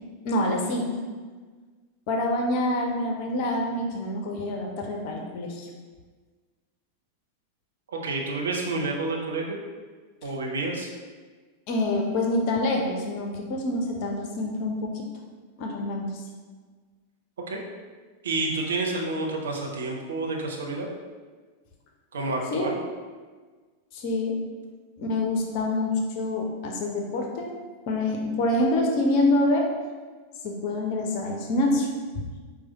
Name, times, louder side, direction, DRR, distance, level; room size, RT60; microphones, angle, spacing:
voice 1, 0.2-0.9 2.1-5.7 11.7-15.1 15.6-16.2 22.5-22.7 23.9-24.4 25.0-27.5 27.9-29.7 30.4-31.9, left 1 dB, 45° left, 1 dB, 0.6 m, -26 dB
voice 2, 7.9-9.6 10.2-10.9 17.5-17.6 18.2-20.9 22.1-22.8, right 2 dB, 65° right, 0 dB, 0.7 m, -29 dB
4.7 x 2.4 x 4.0 m, 1.4 s
figure-of-eight pair, 90°, 0 cm